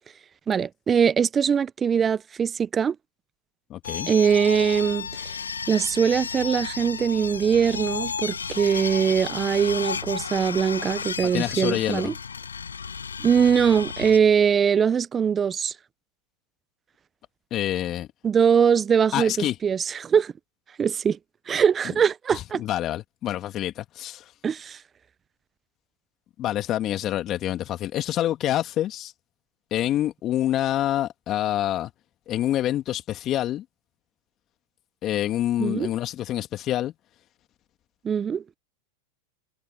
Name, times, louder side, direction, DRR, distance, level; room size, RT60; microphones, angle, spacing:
voice 1, 0.5-3.0 4.1-5.3 5.7-12.1 13.2-15.7 18.2-20.3 20.8-21.2 21.5-22.6 24.4-24.8 35.6-35.9 38.0-38.4, right 7 dB, 25° right, 0.7 m, -22 dB
voice 2, 3.7-4.1 11.2-12.1 17.5-18.1 19.1-19.6 22.3-24.3 26.4-29.1 29.7-31.9 32.3-33.6 35.0-36.9, left 12 dB, 35° left, 2.1 m, -27 dB
sound 1, 3.8-14.2, left 6 dB, 90° left, 6.4 m, -33 dB
hypercardioid pair, 100°, 0 cm